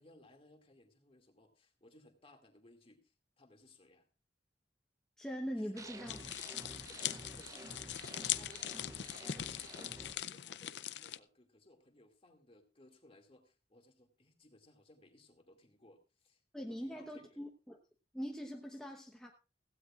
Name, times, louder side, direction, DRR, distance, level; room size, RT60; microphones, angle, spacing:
voice 1, 0.0-4.1 5.5-6.2 6.8-7.7 8.3-16.4 16.7-17.4 18.8-18.9, left 1 dB, 35° left, 4 dB, 2.3 m, -63 dB
voice 2, 5.2-6.2 16.5-17.8 18.1-19.3, equal, 5° left, 1 dB, 1.0 m, -42 dB
sound 1, 5.8-10.1, right 2 dB, 20° right, 0.7 m, -50 dB
sound 2, 6.1-11.2, left 11 dB, 70° left, 0.5 m, -41 dB
16.0 x 15.5 x 2.4 m, 0.31 s
head